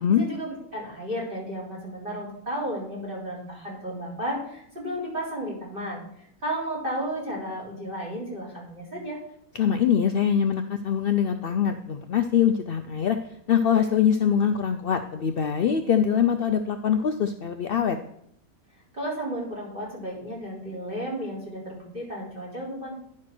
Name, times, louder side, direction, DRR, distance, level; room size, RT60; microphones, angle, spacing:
voice 1, 0.1-9.2 18.9-22.9, equal, 35° right, -6 dB, 3.8 m, -33 dB
voice 2, 9.6-13.2 13.5-18.0, left 8 dB, 75° left, 7 dB, 0.5 m, -23 dB
10.5 x 4.5 x 6.0 m, 0.70 s
omnidirectional pair, 1.6 m